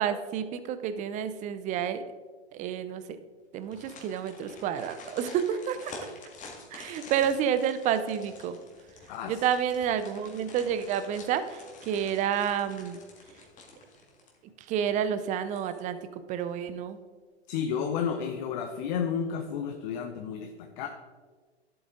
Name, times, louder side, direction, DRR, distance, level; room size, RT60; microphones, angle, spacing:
voice 1, 0.0-2.0 2.5-3.0 3.5-5.9 6.7-8.6 9.3-13.0 14.7-17.0, right 8 dB, 20° right, 12 dB, 0.6 m, -29 dB
sound 1, 3.6-14.5 14.9-15.0 15.4-16.1 16.4-16.5, left 3 dB, 25° left, 2.1 m, -48 dB
voice 2, 9.1-9.4 17.5-20.9, left 7 dB, 45° left, 5 dB, 0.9 m, -32 dB
11.0 x 7.9 x 3.8 m, 1.4 s
hypercardioid pair, 120°, 33 cm